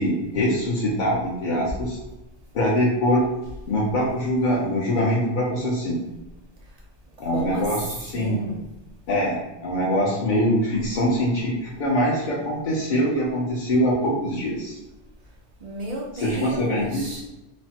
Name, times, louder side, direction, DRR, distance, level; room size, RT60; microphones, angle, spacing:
voice 1, 0.0-2.0 2.5-3.2 3.7-5.9 7.2-8.4 9.1-14.8 16.2-17.2, equal, 50° left, -6 dB, 0.7 m, -23 dB
voice 2, 7.2-7.8 8.1-8.6 15.6-17.3, right 2 dB, 55° right, -1 dB, 0.4 m, -32 dB
3.2 x 2.1 x 2.7 m, 0.99 s
omnidirectional pair, 1.2 m